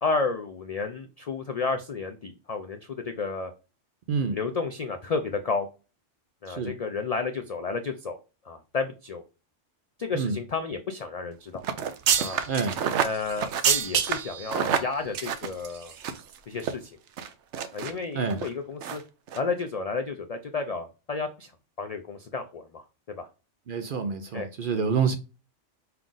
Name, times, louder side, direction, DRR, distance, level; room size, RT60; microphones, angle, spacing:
voice 1, 0.0-3.5 4.3-5.7 6.4-8.2 8.4-9.2 10.0-11.6 12.2-12.4 13.0-15.9 16.5-16.9 17.7-19.0 19.3-21.5 21.8-22.8 23.2-23.3 24.3-24.5, left 4 dB, 65° left, 0.3 m, -31 dB
sound 1, 11.6-16.3 16.6-16.7 17.2-17.9 18.3-18.5 18.8-19.0 19.3-19.4, right 8 dB, 75° right, 0.9 m, -27 dB
voice 2, 23.7-25.1, right 5 dB, 60° right, 0.6 m, -27 dB
5.6 x 2.4 x 3.8 m
omnidirectional pair, 1.2 m